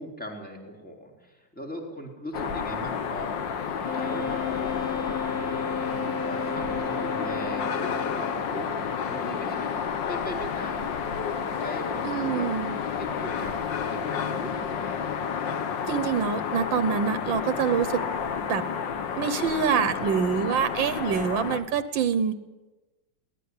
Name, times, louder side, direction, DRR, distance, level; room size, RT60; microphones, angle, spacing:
voice 1, 0.0-3.4 3.9-5.6 6.1-10.9 11.6-12.5 13.0-15.0, equal, 5° left, 0 dB, 3.8 m, -40 dB
sound 1, 2.3-21.6, left 6 dB, 75° left, 1.9 m, -30 dB
Wind instrument woodwind instrument, 3.8-8.5, left 4 dB, 15° right, 3.0 m, -33 dB
voice 2, 12.0-12.8 15.8-18.0 18.5-18.7 19.2-22.3, right 7 dB, 85° right, 12 dB, 1.8 m, -25 dB
22.5 x 18.0 x 9.8 m, 1.1 s
omnidirectional pair, 2.0 m